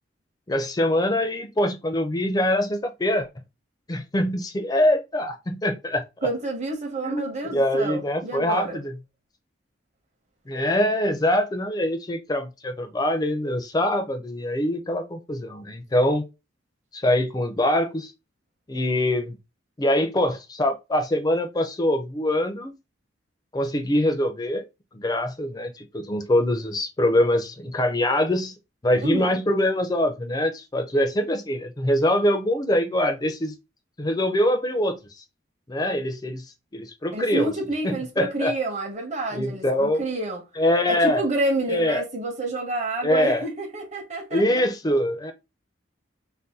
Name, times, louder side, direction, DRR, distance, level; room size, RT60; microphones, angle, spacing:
voice 1, 0.5-3.3 3.9-6.0 7.0-8.8 10.5-16.3 16.9-18.1 18.7-19.4 19.8-22.7 23.5-24.6 24.9-28.5 28.8-33.5 34.0-35.0 35.7-36.4 36.7-37.5 37.8-38.5 39.3-40.0 40.6-41.2 41.7-42.0 43.0-43.4 44.3-45.3, left 1 dB, 20° left, 0.4 m, -24 dB
voice 2, 6.2-8.8 29.0-29.4 37.1-40.4 40.9-44.6, right 2 dB, 35° right, 0.8 m, -28 dB
2.7 x 2.2 x 3.5 m
head